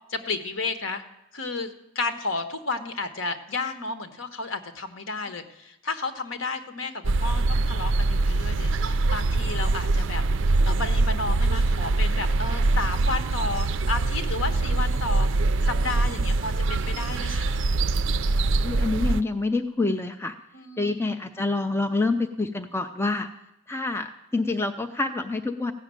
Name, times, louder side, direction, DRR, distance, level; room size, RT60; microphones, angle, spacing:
voice 1, 0.1-1.0 1.3-1.7 1.9-10.2 10.7-15.3 15.6-17.7 20.5-21.1 21.4-21.5, left 3 dB, 70° left, 7 dB, 1.3 m, -32 dB
sound 1, 7.0-19.2, right 3 dB, 60° right, 0.4 m, -23 dB
voice 2, 18.6-20.3 20.8-23.3 23.7-25.7, left 3 dB, 10° left, 6 dB, 0.5 m, -27 dB
15.5 x 6.3 x 8.9 m, 0.89 s
head